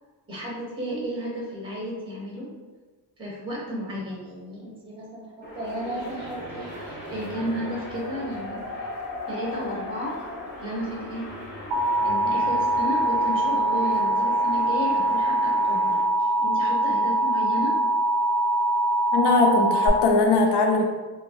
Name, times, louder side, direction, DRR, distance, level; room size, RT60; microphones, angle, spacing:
voice 1, 0.3-2.5 3.2-8.7 9.3-10.2 10.6-11.4 12.0-17.8, equal, 15° right, -4 dB, 0.6 m, -33 dB
sound 1, 5.4-16.0, left 1 dB, 25° left, 0.7 m, -38 dB
Alarm, 11.7-19.9, right 1 dB, 75° right, 0.5 m, -23 dB
voice 2, 19.1-20.9, left 3 dB, 80° left, 3 dB, 0.5 m, -20 dB
2.7 x 2.3 x 2.6 m, 1.4 s
wide cardioid pair, 115°, 40 cm